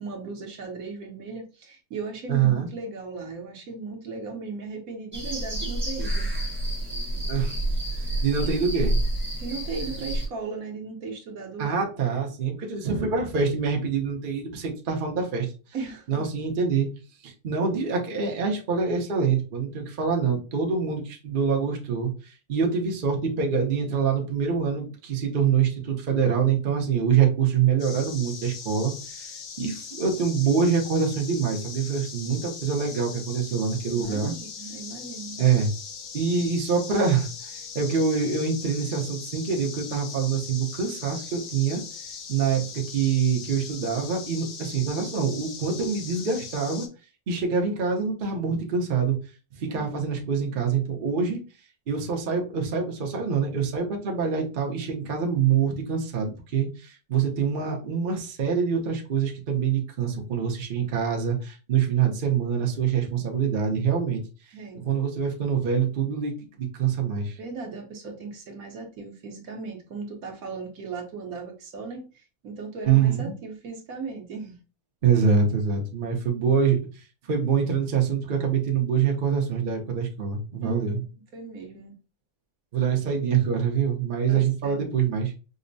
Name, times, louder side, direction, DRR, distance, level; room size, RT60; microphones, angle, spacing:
voice 1, 0.0-6.3 9.4-11.8 15.7-16.2 33.8-35.4 49.7-49.9 64.5-64.8 67.4-74.6 80.6-82.0 84.3-84.8, right 4 dB, 65° right, 1.2 m, -37 dB
voice 2, 2.3-2.7 7.3-7.6 8.2-9.0 11.6-15.5 16.1-16.9 17.2-29.3 29.6-34.3 35.4-35.7 36.1-37.3 37.7-41.8 42.3-46.9 47.3-49.2 49.6-51.4 51.9-64.2 64.7-66.3 66.6-67.4 72.8-73.4 75.0-76.8 77.3-81.0 82.7-85.3, right 6 dB, 45° right, 0.7 m, -25 dB
sound 1, 5.1-10.3, right 1 dB, 10° right, 0.8 m, -28 dB
sound 2, 27.8-46.9, left 6 dB, 75° left, 1.2 m, -40 dB
5.2 x 2.1 x 2.6 m
omnidirectional pair, 1.7 m